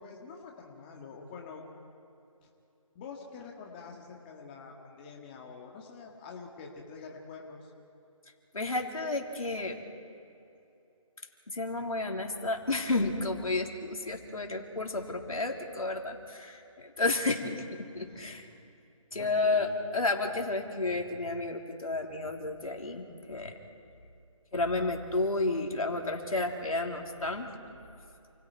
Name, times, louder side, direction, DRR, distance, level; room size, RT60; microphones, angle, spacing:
voice 1, 0.0-1.6 2.9-7.7 18.1-18.4 19.2-19.7, left 5 dB, 15° left, 0 dB, 1.8 m, -46 dB
voice 2, 8.5-9.8 11.5-17.6 18.0-18.5 19.1-23.5 24.5-27.5, left 2 dB, 90° left, 2 dB, 3.6 m, -31 dB
29.0 x 28.5 x 4.7 m, 2.8 s
figure-of-eight pair, 165°, 18 cm